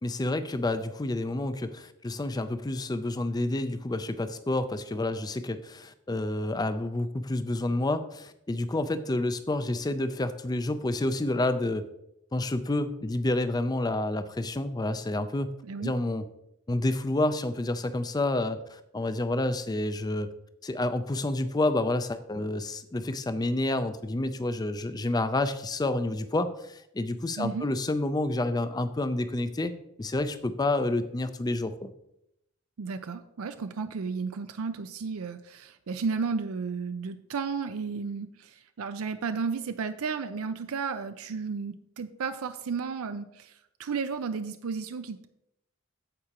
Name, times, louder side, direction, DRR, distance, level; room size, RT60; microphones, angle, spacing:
voice 1, 0.0-11.9 12.3-15.5 15.8-16.2 16.7-20.3 20.6-29.7 30.0-31.9, left 2 dB, 20° left, 11 dB, 0.4 m, -29 dB
voice 2, 15.6-15.9 27.4-27.7 32.8-45.3, right 5 dB, 75° right, 9 dB, 0.5 m, -33 dB
14.5 x 4.9 x 2.9 m, 0.81 s
head